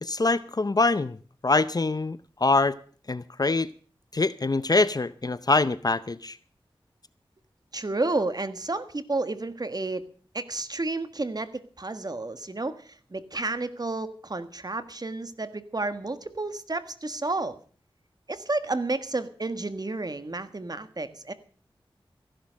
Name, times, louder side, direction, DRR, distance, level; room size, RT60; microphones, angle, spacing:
voice 1, 0.0-1.2 1.4-2.8 3.1-3.7 4.1-6.4, left 3 dB, 45° left, 0.6 m, -24 dB
voice 2, 7.7-10.1 10.3-17.6 18.3-21.3, right 2 dB, 45° right, 1.5 m, -31 dB
15.0 x 11.5 x 6.3 m
wide cardioid pair, 55°, 10 cm